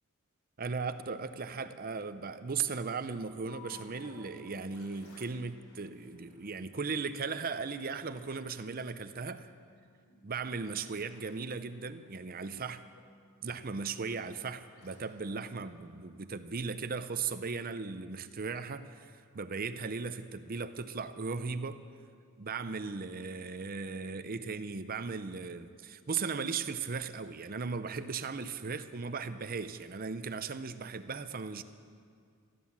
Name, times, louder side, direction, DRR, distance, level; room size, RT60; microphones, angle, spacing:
voice 1, 0.6-9.5 10.2-12.8 13.4-21.8 22.4-31.6, right 5 dB, 40° right, 11 dB, 0.6 m, -37 dB
sound 1, 3.4-16.5, left 3 dB, 75° left, 3.4 m, -60 dB
15.0 x 12.5 x 7.3 m, 2.2 s
head